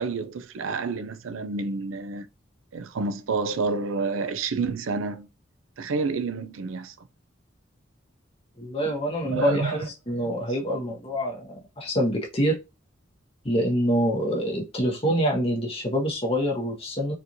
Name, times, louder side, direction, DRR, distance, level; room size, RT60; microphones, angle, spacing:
voice 1, 0.0-2.3 2.7-5.3 5.8-6.9 9.3-9.9, right 4 dB, 85° right, 0.5 m, -29 dB
voice 2, 8.6-12.6 13.4-17.1, equal, 30° left, 1.5 m, -26 dB
4.4 x 3.2 x 2.7 m
head